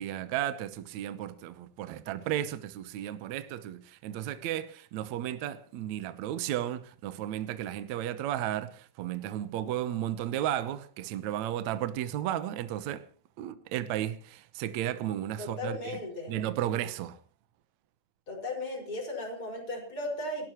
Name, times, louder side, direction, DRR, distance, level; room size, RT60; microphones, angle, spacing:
voice 1, 0.0-13.1 13.4-16.0 16.3-17.2, right 12 dB, 70° right, 2.1 m, -34 dB
voice 2, 15.4-16.4 18.3-20.5, left 2 dB, 25° left, 6.0 m, -36 dB
29.5 x 12.5 x 3.1 m
omnidirectional pair, 3.9 m